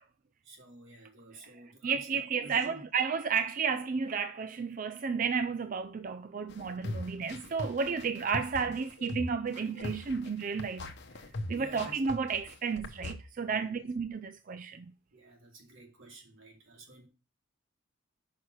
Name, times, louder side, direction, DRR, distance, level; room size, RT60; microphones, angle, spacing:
voice 1, 0.4-2.8 11.5-12.0 13.5-13.8 15.1-17.1, right 2 dB, 80° right, 2.6 m, -51 dB
voice 2, 1.8-10.9 11.5-14.9, right 5 dB, 40° right, 0.4 m, -32 dB
sound 1, 6.5-13.1, left 1 dB, 55° left, 0.9 m, -40 dB
6.4 x 5.6 x 6.2 m
head